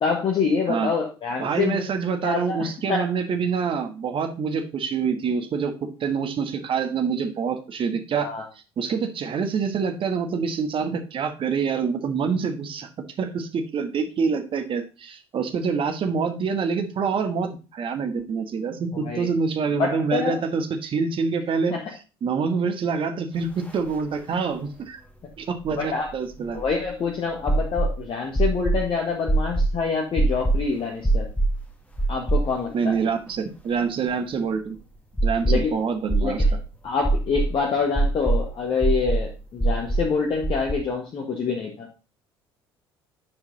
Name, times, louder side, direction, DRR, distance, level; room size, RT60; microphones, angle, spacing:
voice 1, 0.0-1.9 2.2-3.1 8.2-8.5 18.9-19.3 19.7-20.4 21.7-21.8 25.7-26.1 26.5-31.3 32.1-33.0 35.5-35.8 36.2-36.4 36.8-41.9, left 5 dB, 40° left, 0 dB, 1.7 m, -26 dB
voice 2, 1.4-8.3 8.8-12.9 13.2-21.7 22.2-25.0 25.4-26.6 32.7-34.8 35.2-36.4, right 5 dB, 40° right, 7 dB, 1.4 m, -26 dB
sound 1, 23.7-23.8 24.0-24.1 25.6-26.9 27.5-27.9 28.4-28.8 29.3-29.7 30.2-30.6 31.0-31.6 32.0-32.8 33.1-33.2 35.2-35.7 36.1-36.6 37.0-37.5 38.0-38.4 38.8-39.2 39.6-40.1 40.4-40.7, right 2 dB, 10° left, 1.6 m, -22 dB
9.8 x 4.8 x 3.9 m, 0.32 s
figure-of-eight pair, 55°, 13 cm